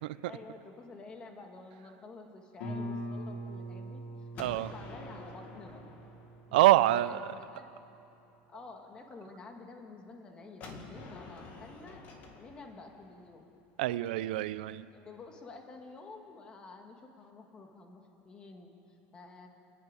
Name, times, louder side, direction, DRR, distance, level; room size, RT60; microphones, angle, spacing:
voice 1, 0.2-5.8 6.5-7.7 8.5-12.0 12.4-13.5 14.9-19.5, left 3 dB, 20° left, 3 dB, 1.7 m, -50 dB
Guitar, 2.6-8.0, equal, 65° left, 5.1 m, -43 dB
Gunshot gunfire, 4.3-7.2 10.6-14.4, left 3 dB, 35° left, 2.1 m, -49 dB
voice 2, 4.4-4.7 6.5-7.2 13.8-14.9, right 16 dB, 85° right, 15 dB, 0.6 m, -26 dB
29.5 x 11.0 x 9.5 m, 2.8 s
supercardioid pair, 170°, 5 cm